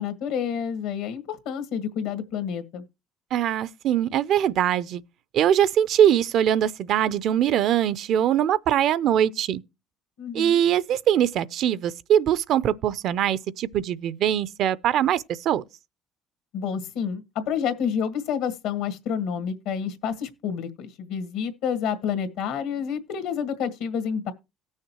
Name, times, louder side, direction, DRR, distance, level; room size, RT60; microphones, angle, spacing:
voice 1, 0.0-2.8 10.2-10.6 16.5-24.3, left 7 dB, 80° left, 1.7 m, -29 dB
voice 2, 3.3-5.0 5.3-9.6 10.3-15.6, right 10 dB, 60° right, 0.5 m, -22 dB
18.0 x 6.4 x 3.0 m
cardioid pair, 115°, 0 cm